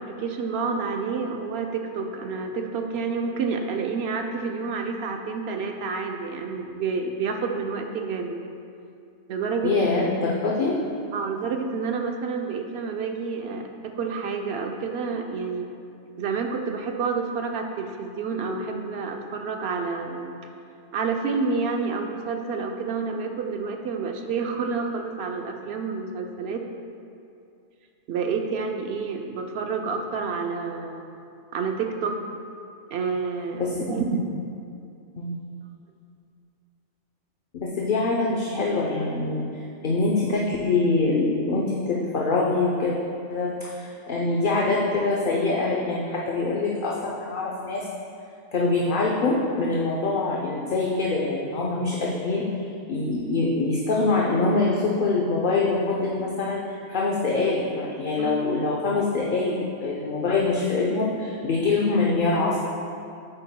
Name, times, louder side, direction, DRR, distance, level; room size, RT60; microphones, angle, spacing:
voice 1, 0.0-8.4 9.3-9.9 11.1-15.7 16.2-20.3 20.9-26.6 28.1-31.0 31.5-32.2 32.9-34.2 58.2-58.4, right 5 dB, 65° right, 4 dB, 0.8 m, -29 dB
voice 2, 9.6-10.8 33.5-33.9 35.2-35.4 37.5-43.0 43.3-47.9 48.5-52.4 52.9-62.6, left 3 dB, 50° left, -4 dB, 0.8 m, -24 dB
8.9 x 8.2 x 2.2 m, 2.5 s
omnidirectional pair, 1.3 m